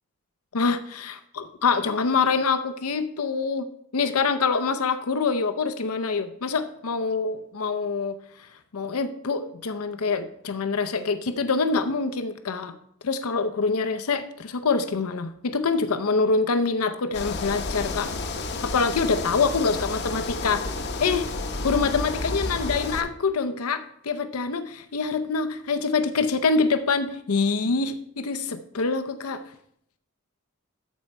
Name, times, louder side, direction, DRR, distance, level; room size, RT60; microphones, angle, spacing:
voice 1, 0.5-3.7 3.9-8.1 8.7-12.7 13.0-18.1 18.6-20.7 21.0-21.3 21.6-29.4, left 4 dB, 85° left, 10 dB, 0.6 m, -25 dB
sound 1, 17.1-23.0, left 3 dB, 50° left, 0.8 m, -31 dB
13.5 x 4.5 x 5.4 m, 0.70 s
head